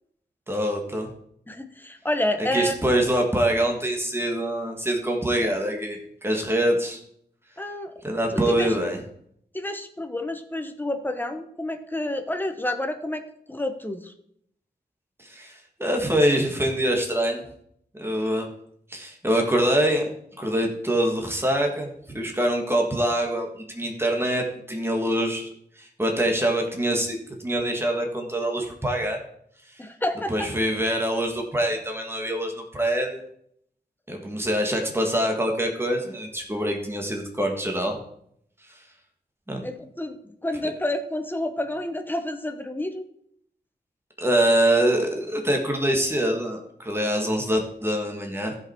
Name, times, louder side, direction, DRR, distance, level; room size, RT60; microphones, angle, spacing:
voice 1, 0.5-1.1 2.4-7.0 8.0-9.0 15.2-17.4 18.0-18.5 18.9-20.1 20.4-25.5 25.8-29.2 30.3-33.2 34.1-38.0 38.7-38.8 39.5-39.7 44.2-48.6, right 1 dB, 15° right, 2 dB, 1.8 m, -24 dB
voice 2, 1.5-2.7 7.6-7.9 8.5-8.7 9.5-13.2 13.5-14.1 29.8-30.5 39.6-43.1, left 1 dB, 10° left, 7 dB, 1.0 m, -29 dB
15.0 x 5.6 x 4.5 m, 0.70 s
wide cardioid pair, 100°, 18 cm